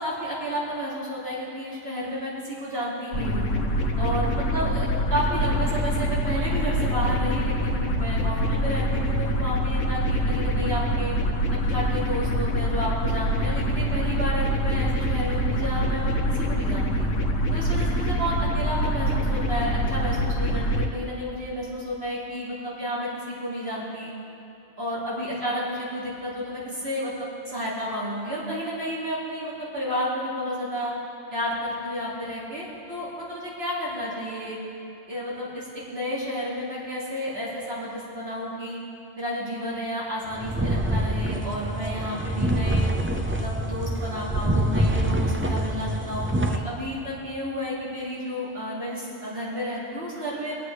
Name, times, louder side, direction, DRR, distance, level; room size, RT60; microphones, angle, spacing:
voice 1, 0.0-3.5 4.0-11.1 11.7-17.1 17.5-24.1 24.8-27.1 27.5-30.9 31.3-34.6 35.1-38.8 39.2-42.9 43.4-50.5, equal, 55° right, -8 dB, 2.6 m, -31 dB
sound 1, 3.1-20.8, equal, 90° left, 1.3 m, -25 dB
sound 2, 40.3-46.6, right 1 dB, 15° right, 0.4 m, -25 dB
22.5 x 8.2 x 3.2 m, 2.9 s
omnidirectional pair, 1.3 m